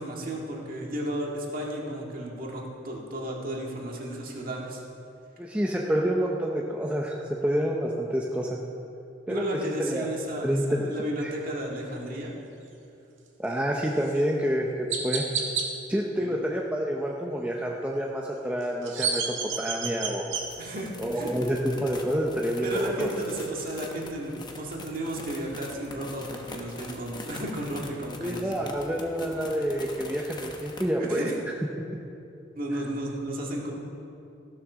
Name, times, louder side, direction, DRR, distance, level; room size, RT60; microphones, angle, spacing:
voice 1, 0.0-4.8 9.3-12.3 14.2-14.3 16.2-16.4 20.6-21.3 22.6-28.6 29.2-29.3 31.0-31.3 32.5-33.7, right 1 dB, 45° right, -2 dB, 2.0 m, -33 dB
voice 2, 5.4-8.6 9.3-10.1 10.4-10.9 11.2-11.3 13.4-15.3 15.9-20.2 21.0-23.1 28.2-31.3, equal, 5° right, -2 dB, 0.6 m, -28 dB
Chirp tweet, 14.0-14.1 14.9-15.7 18.6-20.4, right 6 dB, 80° right, 1.7 m, -29 dB
sound 1, 20.3-30.9, left 2 dB, 20° left, 1.0 m, -43 dB
15.0 x 7.4 x 6.2 m, 2.7 s
head